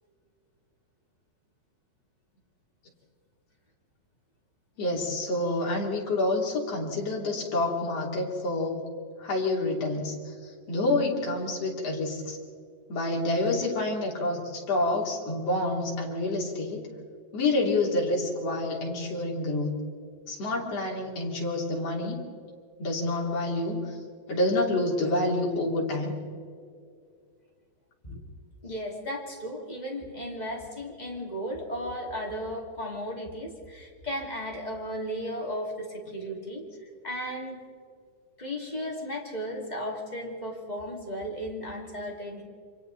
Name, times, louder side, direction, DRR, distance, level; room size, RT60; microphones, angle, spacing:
voice 1, 4.8-8.8 9.2-12.4 12.9-16.9 17.3-19.8 20.3-22.2 22.8-24.0 24.3-26.2, left 2 dB, 55° left, -1 dB, 4.0 m, -28 dB
voice 2, 28.6-36.6 37.0-37.6 38.4-42.4, equal, 15° left, -1 dB, 2.5 m, -35 dB
29.0 x 25.0 x 4.1 m, 2.3 s
omnidirectional pair, 3.4 m